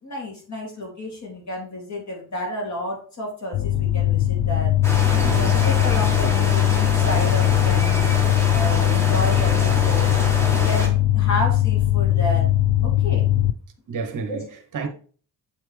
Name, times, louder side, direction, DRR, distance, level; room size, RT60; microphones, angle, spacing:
voice 1, 0.0-4.7 5.3-10.1 10.5-12.5 12.8-13.3 14.3-14.4 14.8-14.9, left 1 dB, 40° left, 2.9 m, -31 dB
sound 1, 3.5-13.5, left 14 dB, 75° left, 0.6 m, -20 dB
sound 2, 4.8-10.9, equal, 5° left, 1.5 m, -27 dB
voice 2, 5.1-5.7 13.9-14.9, right 4 dB, 50° right, 1.2 m, -30 dB
7.2 x 4.5 x 3.4 m
cardioid pair, 120°, 42 cm